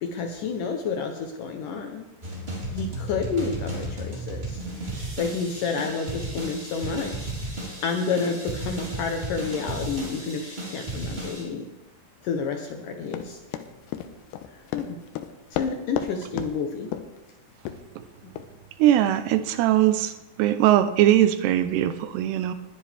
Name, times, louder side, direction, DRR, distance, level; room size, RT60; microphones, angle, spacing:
voice 1, 0.0-2.1 2.7-4.6 5.2-7.5 7.8-11.7 12.2-13.4 14.7-15.0 15.5-16.9 18.2-18.3, left 5 dB, 70° left, 4 dB, 2.1 m, -30 dB
sound 1, 2.2-11.4, right 2 dB, 15° right, 3.1 m, -34 dB
Run, 13.1-16.1 16.4-16.5 16.9-17.2 17.7-17.8 18.4-18.5, left 11 dB, 90° left, 2.9 m, -32 dB
voice 2, 18.8-20.1 20.4-22.5, right 12 dB, 85° right, 11 dB, 2.9 m, -20 dB
20.5 x 10.0 x 3.5 m, 1.0 s
omnidirectional pair, 4.7 m